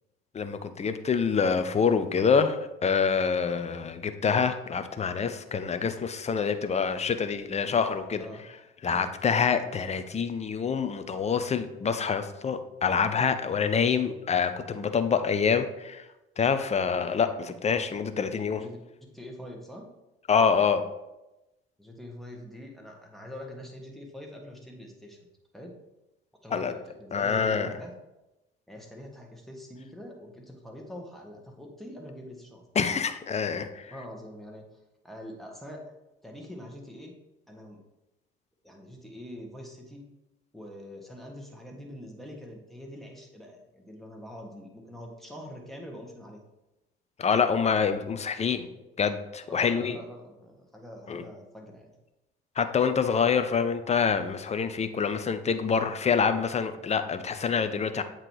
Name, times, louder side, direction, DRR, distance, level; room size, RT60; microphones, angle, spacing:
voice 1, 0.3-8.2 8.8-16.0 16.4-18.6 20.3-20.8 26.5-26.7 27.1-27.7 32.8-33.9 47.2-48.7 49.0-50.0 51.1-51.2 52.6-58.0, left 6 dB, 20° left, 9 dB, 0.6 m, -26 dB
voice 2, 19.1-19.9 21.8-25.3 25.5-25.7 26.4-27.9 28.7-32.6 33.9-34.6 35.0-35.9 36.2-37.1 37.5-37.8 38.6-40.0 40.5-46.4 49.5-51.9, equal, ahead, 0 dB, 1.5 m, -44 dB
7.7 x 3.0 x 4.7 m, 0.97 s
hypercardioid pair, 55°, 30 cm